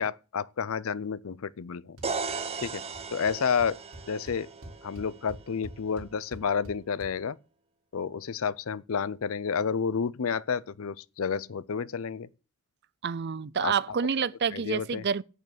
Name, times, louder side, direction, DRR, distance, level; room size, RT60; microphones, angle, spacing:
voice 1, 0.0-2.0 2.6-2.8 3.1-3.8 4.1-4.5 4.8-7.4 7.9-12.3 13.6-13.7 14.5-15.0, left 6 dB, 65° left, 0.5 m, -30 dB
sound 1, 2.0-5.9, right 4 dB, 25° right, 1.2 m, -37 dB
sound 2, 2.0-2.3 2.6-3.0 3.3-3.4 3.6-7.1, equal, 70° right, 3.5 m, -45 dB
voice 2, 13.0-15.2, right 6 dB, 50° right, 0.5 m, -28 dB
8.6 x 6.6 x 8.0 m
head